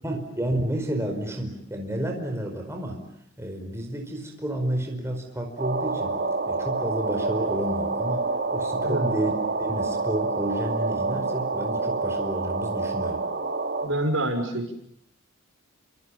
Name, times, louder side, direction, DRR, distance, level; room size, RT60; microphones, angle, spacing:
voice 1, 0.0-3.1 3.4-6.2 6.5-9.3 9.6-13.3, right 1 dB, 15° right, 2 dB, 4.9 m, -30 dB
sound 1, 5.6-13.9, right 3 dB, 45° right, 5.3 m, -27 dB
voice 2, 13.8-14.7, right 1 dB, 65° right, 5 dB, 6.2 m, -26 dB
29.0 x 27.0 x 7.1 m, 0.70 s
head